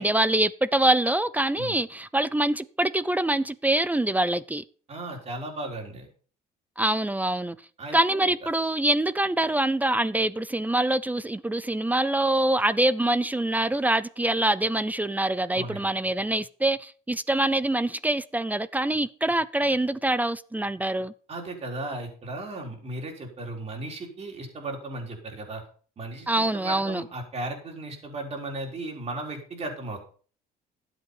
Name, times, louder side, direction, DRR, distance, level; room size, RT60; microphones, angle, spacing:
voice 1, 0.0-4.6 6.8-7.6 7.9-21.1 26.3-27.1, right 1 dB, 10° right, 0.5 m, -25 dB
voice 2, 4.9-6.1 7.8-8.3 15.5-15.9 21.3-25.6 26.0-30.0, right 2 dB, 40° right, 4.2 m, -36 dB
12.0 x 8.1 x 5.5 m
cardioid pair, 110°, 17 cm